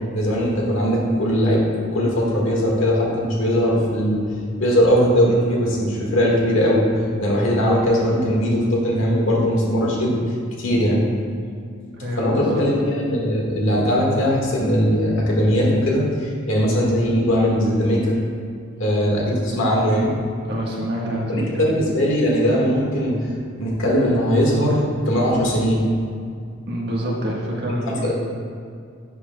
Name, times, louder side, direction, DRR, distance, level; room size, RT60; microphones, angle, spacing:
voice 1, 0.1-1.6 1.9-4.2 4.6-6.8 7.2-10.2 10.6-11.0 12.2-18.2 18.8-20.1 21.3-23.1 23.6-25.8 28.0-28.1, equal, 75° left, -3 dB, 1.7 m, -19 dB
voice 2, 11.9-12.5 20.5-21.6 26.7-28.1, equal, 55° right, -4 dB, 1.4 m, -26 dB
10.5 x 6.8 x 2.3 m, 2.3 s
head